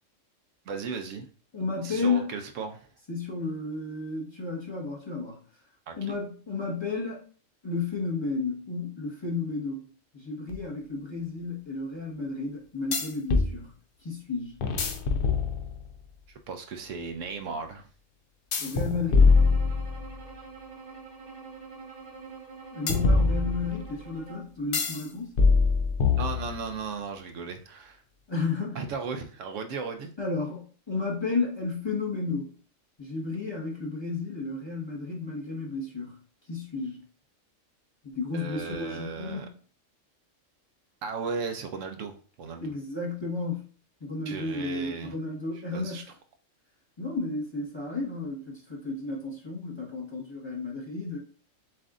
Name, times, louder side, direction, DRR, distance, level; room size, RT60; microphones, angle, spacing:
voice 1, 0.7-1.3 1.8-2.9 5.9-6.2 16.3-17.9 26.2-28.0 28.7-30.1 38.3-39.5 41.0-42.7 44.3-45.1 45.7-46.0, right 5 dB, 75° right, 6 dB, 0.9 m, -36 dB
voice 2, 1.5-2.3 3.1-5.4 6.0-7.2 7.6-9.9 10.1-13.7 14.0-14.6 18.6-19.5 22.7-25.3 28.3-28.8 30.2-32.5 33.0-36.2 36.5-37.0 38.0-39.5 42.6-43.7 44.0-46.0 47.0-51.2, left 3 dB, 20° left, -4 dB, 1.1 m, -32 dB
sound 1, 10.5-10.6 12.9-13.5 14.6-15.9 18.5-20.2 22.9-23.9 24.7-25.0 25.4-26.7, left 4 dB, 55° left, 0.7 m, -23 dB
Bowed string instrument, 19.2-24.6, right 4 dB, 35° right, 1.1 m, -45 dB
7.4 x 2.6 x 2.4 m, 0.41 s
omnidirectional pair, 1.3 m